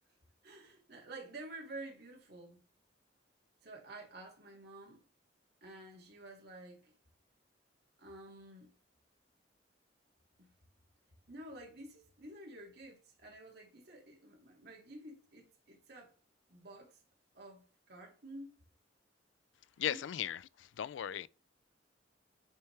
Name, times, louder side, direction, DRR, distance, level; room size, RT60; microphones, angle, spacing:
voice 1, 0.4-2.6 3.6-5.0 5.6-6.9 8.0-8.7 11.3-16.1 16.5-17.0 17.3-18.5 19.9-20.1, right 2 dB, 60° right, 2.1 m, -50 dB
voice 2, 19.8-20.4 20.8-21.3, left 10 dB, 85° left, 0.3 m, -36 dB
8.8 x 3.4 x 3.2 m
head